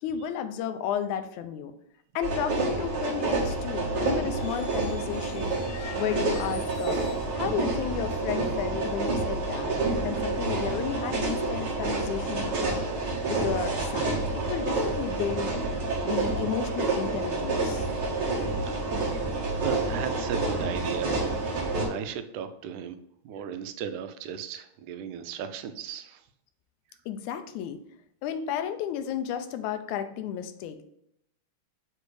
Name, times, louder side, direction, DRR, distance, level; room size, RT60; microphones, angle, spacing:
voice 1, 0.0-1.7 2.2-5.5 6.0-7.0 7.3-9.8 10.0-12.9 13.3-15.6 16.0-17.9 27.1-27.8 28.2-30.8, left 9 dB, 85° left, 9 dB, 2.0 m, -33 dB
sound 1, 2.2-21.9, right 3 dB, 45° right, 1.8 m, -29 dB
sound 2, 4.2-7.4, left 6 dB, 65° left, 1.5 m, -46 dB
voice 2, 18.6-19.2 19.5-21.6 21.9-23.0 23.3-26.2, right 8 dB, 90° right, 10 dB, 2.1 m, -36 dB
6.8 x 3.3 x 4.8 m, 0.75 s
omnidirectional pair, 3.4 m